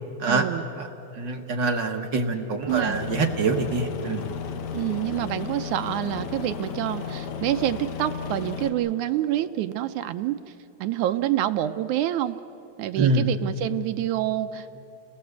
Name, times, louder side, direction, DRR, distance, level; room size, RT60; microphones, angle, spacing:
voice 1, 0.3-0.7 2.7-3.0 4.7-10.4 10.8-12.4 12.8-14.8, right 13 dB, 75° right, 9 dB, 1.8 m, -27 dB
voice 2, 1.1-4.2 13.0-13.2, right 3 dB, 55° right, 3 dB, 1.2 m, -25 dB
Aircraft, 2.7-8.7, left 7 dB, 65° left, 2.5 m, -34 dB
29.5 x 19.5 x 8.1 m, 2.9 s
omnidirectional pair, 3.9 m